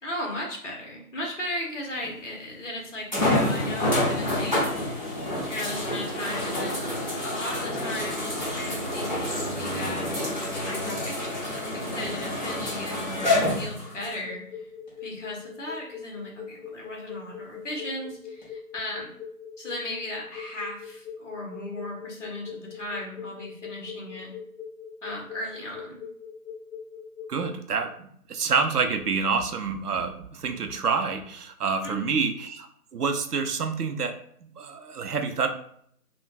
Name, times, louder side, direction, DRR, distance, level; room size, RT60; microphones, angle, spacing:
voice 1, 0.0-4.7 5.5-10.1 10.6-14.7 15.0-19.1 19.6-24.3 25.0-26.0 31.8-32.3, left 1 dB, 55° left, -1 dB, 0.9 m, -36 dB
sound 1, 2.0-2.1 3.1-14.1 14.9-15.0 18.4-18.5, left 1 dB, 30° left, 0.7 m, -28 dB
sound 2, 13.8-27.5, left 8 dB, 70° left, 0.5 m, -41 dB
voice 2, 27.3-35.5, right 5 dB, 85° right, 7 dB, 0.5 m, -28 dB
3.2 x 2.2 x 2.2 m, 0.66 s
figure-of-eight pair, 165°, 45 cm